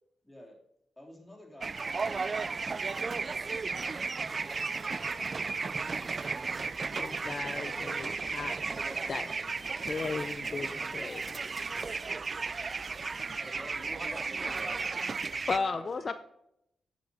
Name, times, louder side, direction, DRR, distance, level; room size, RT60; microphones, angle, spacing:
voice 1, 0.2-0.6 1.0-3.9 4.6-5.1 8.7-9.4 10.5-11.5, left 1 dB, 5° left, -3 dB, 3.1 m, -53 dB
sound 1, 1.6-15.6, right 4 dB, 40° right, 0.3 m, -34 dB
voice 2, 7.0-8.5 9.1-9.2 9.8-10.7 10.9-11.2 15.5-16.1, left 4 dB, 45° left, 10 dB, 0.5 m, -34 dB
voice 3, 13.3-14.8 15.5-16.1, equal, 15° right, 2 dB, 2.2 m, -48 dB
9.4 x 6.3 x 4.1 m, 0.78 s
cardioid pair, 80°, 0 cm